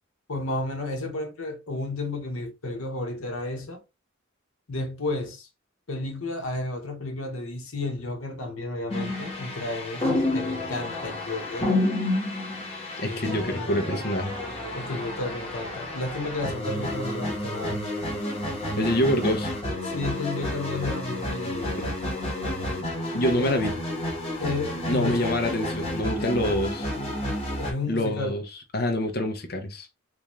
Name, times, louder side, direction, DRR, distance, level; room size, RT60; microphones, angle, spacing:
voice 1, 0.3-3.8 4.7-5.5 5.9-11.8 13.0-13.3 14.7-17.8 19.8-22.0 23.4-23.6 24.4-25.4 26.2-26.4 27.6-28.4, left 2 dB, 85° left, 0.9 m, -32 dB
sound 1, 8.9-27.7, left 1 dB, 25° left, 1.2 m, -30 dB
voice 2, 13.0-14.4 18.8-19.5 23.1-23.7 24.9-26.9 27.9-28.4 28.7-29.9, left 1 dB, 45° left, 0.6 m, -26 dB
3.4 x 2.5 x 3.1 m
head